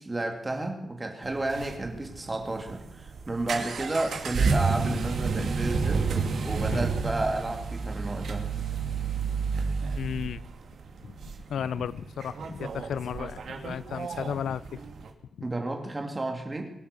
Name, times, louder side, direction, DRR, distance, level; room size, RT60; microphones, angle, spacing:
voice 1, 0.0-8.5 11.8-11.9 15.4-16.7, right 2 dB, 15° right, 3 dB, 2.5 m, -32 dB
sound 1, 1.2-15.1, right 5 dB, 65° right, 2.4 m, -31 dB
voice 2, 10.0-10.4 11.0-11.2 11.5-14.8, left 8 dB, 80° left, 18 dB, 0.5 m, -34 dB
23.0 x 8.4 x 6.7 m, 0.94 s
wide cardioid pair, 165°, 0 cm